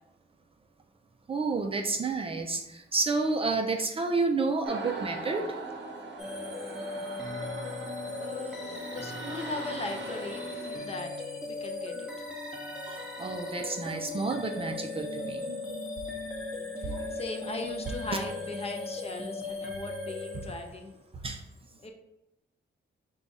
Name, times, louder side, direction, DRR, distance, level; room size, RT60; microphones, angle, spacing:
voice 1, 1.3-5.5 12.0-12.1 12.9-15.8 16.8-17.2 21.2-21.4, right 3 dB, 30° right, 4 dB, 0.4 m, -30 dB
sound 1, 4.6-11.0, right 3 dB, 75° right, 0.7 m, -41 dB
sound 2, 6.2-20.9, left 2 dB, 5° right, 0.7 m, -38 dB
voice 2, 8.2-12.3 16.4-20.9 21.8-21.9, left 2 dB, 30° left, 3 dB, 0.5 m, -39 dB
4.8 x 2.3 x 4.0 m, 0.90 s
wide cardioid pair, 140°, 19 cm